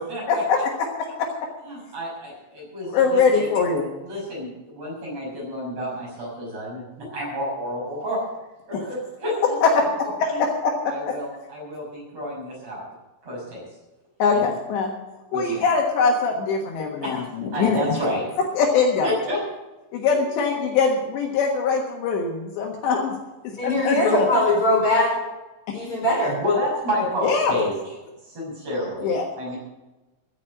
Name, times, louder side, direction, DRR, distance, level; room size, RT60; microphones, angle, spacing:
voice 1, 0.3-1.5 2.9-3.9 8.7-8.8 9.6-9.9 10.2-11.2 14.2-14.9 15.3-17.8 18.6-19.1 19.9-23.1 23.6-24.3 25.7-25.8 27.2-27.5 29.0-29.2, left 5 dB, 70° left, 1 dB, 3.4 m, -22 dB
voice 2, 1.6-3.5 4.0-8.2 8.7-9.6 10.0-10.4 10.9-12.8 13.2-13.7 14.3-14.5 15.3-15.7 17.0-17.2 17.5-18.2 19.0-19.4 26.4-27.8 28.2-29.6, left 1 dB, 35° right, -4 dB, 6.9 m, -29 dB
voice 3, 23.6-25.1 25.7-26.4, left 1 dB, 30° left, -2 dB, 4.4 m, -21 dB
15.0 x 8.6 x 7.4 m, 1.1 s
omnidirectional pair, 5.6 m